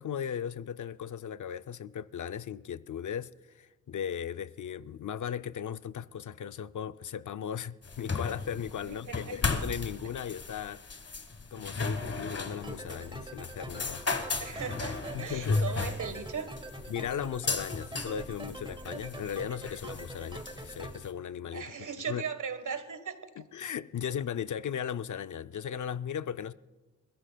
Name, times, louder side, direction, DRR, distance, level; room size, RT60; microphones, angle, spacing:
voice 1, 0.0-10.8 11.5-14.0 15.1-15.6 16.9-22.2 23.4-26.5, left 8 dB, 75° left, 0.5 m, -37 dB
sound 1, 7.8-21.1, left 3 dB, 50° left, 1.4 m, -35 dB
voice 2, 8.8-9.4 11.7-11.9 14.4-16.5 21.5-23.1, right 6 dB, 80° right, 1.4 m, -38 dB
sound 2, 12.6-21.0, right 1 dB, 15° right, 1.3 m, -44 dB
29.5 x 14.0 x 2.3 m
wide cardioid pair, 90°, 30 cm